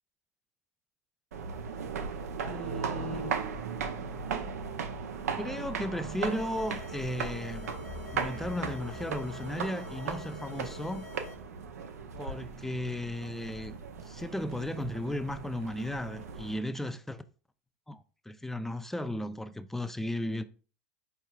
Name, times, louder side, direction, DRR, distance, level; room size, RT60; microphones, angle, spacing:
sound 1, 1.3-16.6, right 5 dB, 85° right, 0.6 m, -37 dB
voice 1, 2.4-3.3 5.4-7.7 8.1-11.0 12.2-13.8 14.1-17.2 17.9-20.4, left 1 dB, 5° left, 0.3 m, -35 dB
sound 2, 6.2-11.3, left 6 dB, 85° left, 1.0 m, -48 dB
sound 3, 7.7-14.7, left 5 dB, 30° left, 0.9 m, -53 dB
4.7 x 4.4 x 2.3 m
hypercardioid pair, 90°, 8 cm